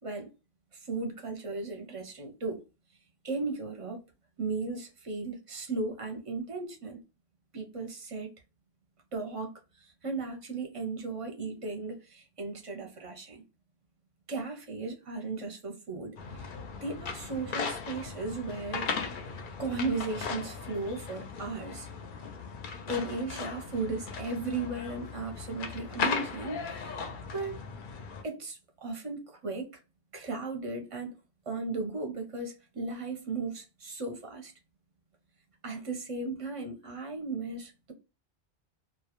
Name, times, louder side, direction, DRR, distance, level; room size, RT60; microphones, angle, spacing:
voice 1, 0.7-2.6 3.2-4.0 4.4-7.0 7.5-8.3 9.1-9.5 9.8-13.4 14.3-16.5 16.8-18.9 19.6-21.9 22.8-26.9 27.3-27.6 28.2-29.7 30.1-31.1 31.5-34.5 35.6-37.9, right 3 dB, 40° right, 0.6 m, -36 dB
sound 1, 16.2-28.2, left 5 dB, 60° left, 0.6 m, -37 dB
2.2 x 2.1 x 2.9 m
omnidirectional pair, 1.1 m